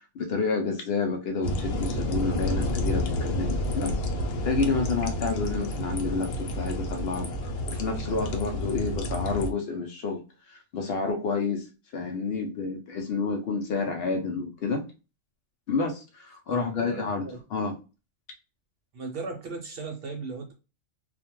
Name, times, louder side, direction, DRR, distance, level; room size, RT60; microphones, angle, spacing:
voice 1, 0.1-4.0 4.4-11.7 11.9-14.8 15.7-17.2 17.5-17.8, left 4 dB, 65° left, 3 dB, 0.7 m, -29 dB
sound 1, 1.4-9.5, left 1 dB, 85° left, 1.0 m, -30 dB
voice 2, 16.5-17.4 18.9-20.5, right 4 dB, 60° right, 3 dB, 0.7 m, -36 dB
2.4 x 2.1 x 2.9 m, 0.31 s
omnidirectional pair, 1.3 m